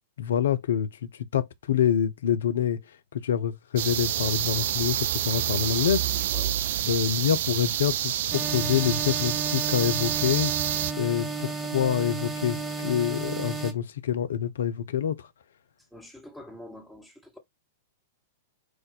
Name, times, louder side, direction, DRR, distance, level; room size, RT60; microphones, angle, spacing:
voice 1, 0.2-6.0 6.8-10.5 11.0-15.3, left 9 dB, 70° left, 0.6 m, -26 dB
sound 1, 3.8-10.9, right 12 dB, 60° right, 0.3 m, -28 dB
sound 2, 8.3-13.7, right 4 dB, 15° right, 1.2 m, -33 dB
voice 2, 15.9-17.4, left 1 dB, ahead, 1.4 m, -45 dB
4.7 x 2.6 x 4.1 m
figure-of-eight pair, 105°, 0 cm